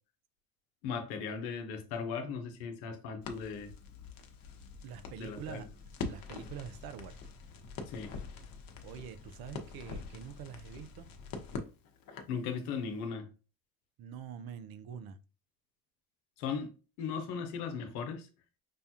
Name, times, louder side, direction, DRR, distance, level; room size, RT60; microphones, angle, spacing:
voice 1, 0.8-3.7 5.2-5.7 7.9-8.1 12.3-13.3 16.4-16.7 17.0-18.3, left 6 dB, 85° left, 0.9 m, -37 dB
Crackle, 3.2-12.4, left 4 dB, 50° left, 0.9 m, -45 dB
voice 2, 4.8-5.7 6.1-7.2 8.8-11.1 14.0-15.2, right 8 dB, 55° right, 0.6 m, -45 dB
5.3 x 2.3 x 2.8 m
supercardioid pair, 85°, 44 cm